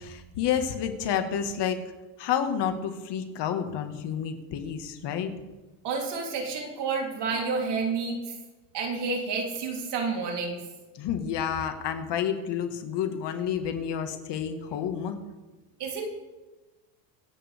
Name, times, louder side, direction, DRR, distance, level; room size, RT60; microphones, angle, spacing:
voice 1, 0.0-1.8 2.2-5.4 11.0-15.2, left 8 dB, 55° left, 7 dB, 1.9 m, -30 dB
voice 2, 5.8-8.4 8.7-10.6 15.8-16.1, right 4 dB, 55° right, 0 dB, 3.6 m, -30 dB
25.5 x 8.9 x 3.6 m, 1.2 s
supercardioid pair, 95°, 48 cm